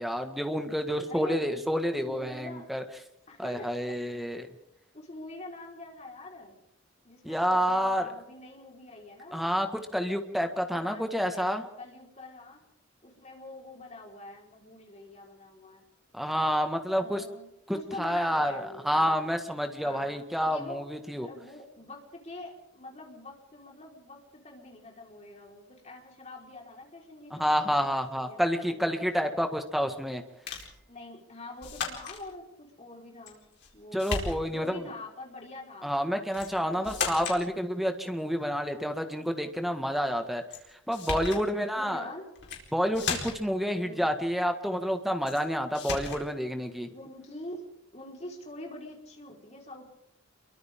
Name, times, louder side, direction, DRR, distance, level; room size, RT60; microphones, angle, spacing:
voice 1, 0.0-2.8 3.4-4.5 7.2-8.1 9.3-9.7 9.9-11.6 16.1-17.2 17.7-21.3 27.3-30.2 33.9-34.8 35.8-40.4 40.9-42.0 42.7-46.9, equal, ahead, 6 dB, 1.8 m, -29 dB
voice 2, 1.0-1.5 2.0-2.7 3.3-3.7 4.1-4.2 4.9-6.6 7.0-9.5 10.4-12.6 13.0-15.8 17.0-19.2 19.8-20.1 20.5-20.8 21.2-28.9 30.9-33.4 33.7-34.2 34.5-35.9 36.6-37.7 41.4-42.3 43.7-44.1 46.9-47.6 47.9-49.9, left 2 dB, 35° left, 0 dB, 4.7 m, -45 dB
sound 1, 30.5-30.7 31.6-32.2 33.3-33.7 34.0-34.7 36.3-36.5 36.8-37.4 40.5-40.6 40.9-41.4 42.3-42.6 42.9-43.5 45.3-45.4 45.7-46.2, left 4 dB, 60° left, 4.4 m, -35 dB
30.0 x 23.0 x 3.8 m, 0.79 s
head